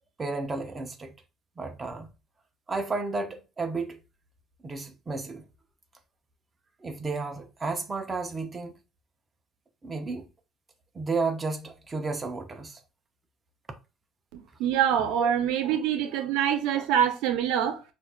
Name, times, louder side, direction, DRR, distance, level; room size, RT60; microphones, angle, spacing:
voice 1, 0.2-1.1 1.6-2.1 2.7-4.0 4.6-5.5 6.8-8.7 9.8-10.3 10.9-12.8 15.2-15.3, right 3 dB, 20° right, 0.6 m, -32 dB
voice 2, 14.3-17.8, right 9 dB, 90° right, 0.6 m, -25 dB
5.7 x 2.5 x 2.3 m
cardioid pair, 140°, 0 cm